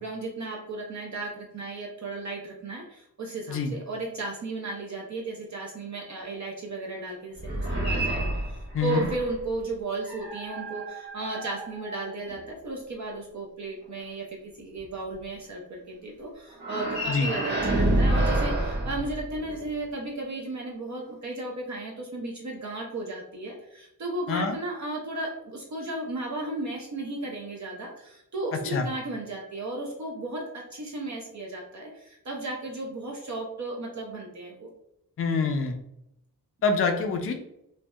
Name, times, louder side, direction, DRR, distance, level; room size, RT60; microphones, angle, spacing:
voice 1, 0.0-34.7, right 2 dB, 45° right, -1 dB, 0.6 m, -35 dB
sound 1, 7.4-9.4 10.0-12.4 16.5-19.7, right 1 dB, 25° right, 1.2 m, -28 dB
voice 2, 8.7-9.1 17.1-17.3 24.3-24.6 28.6-28.9 35.2-35.7 36.6-37.3, left 4 dB, 35° left, 5 dB, 0.4 m, -26 dB
2.6 x 2.1 x 2.2 m, 0.80 s
cardioid pair, 45°, 39 cm